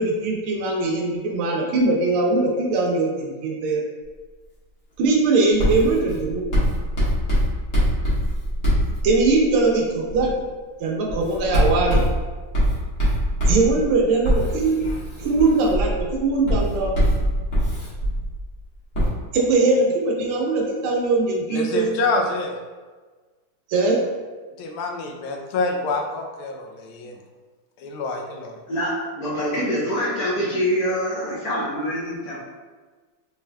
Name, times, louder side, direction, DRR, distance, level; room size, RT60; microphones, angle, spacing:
voice 1, 0.0-3.8 5.0-6.4 9.0-10.3 10.8-12.0 13.5-14.8 15.2-16.9 19.3-21.9 23.7-24.0, right 3 dB, 80° right, -1 dB, 1.5 m, -21 dB
Writing, 5.6-9.5 10.1-10.4 11.1-18.5 18.9-19.1, equal, 40° left, 1.5 m, -23 dB
voice 2, 21.5-22.5 24.6-27.2 27.8-28.6, left 3 dB, 85° left, 2 dB, 1.5 m, -27 dB
voice 3, 28.7-32.4, equal, 55° left, -7 dB, 1.1 m, -25 dB
4.1 x 3.3 x 2.2 m, 1.4 s
omnidirectional pair, 2.3 m